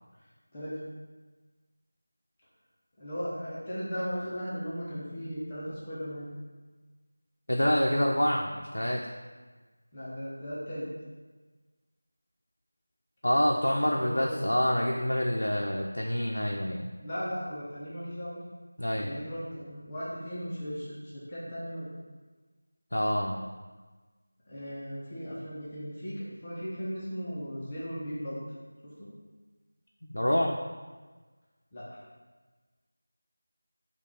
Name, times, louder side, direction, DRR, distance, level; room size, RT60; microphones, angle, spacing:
voice 1, 3.0-6.3 9.9-10.9 13.6-14.4 17.0-18.4 19.0-21.9 24.5-28.4 28.8-29.1 31.7-32.0, equal, 20° left, -9 dB, 0.7 m, -37 dB
voice 2, 7.5-9.0 13.2-16.8 18.8-19.2 22.9-23.4 30.1-30.6, equal, 85° left, -1 dB, 0.4 m, -27 dB
4.7 x 2.3 x 3.5 m, 1.3 s
figure-of-eight pair, 175°, 0 cm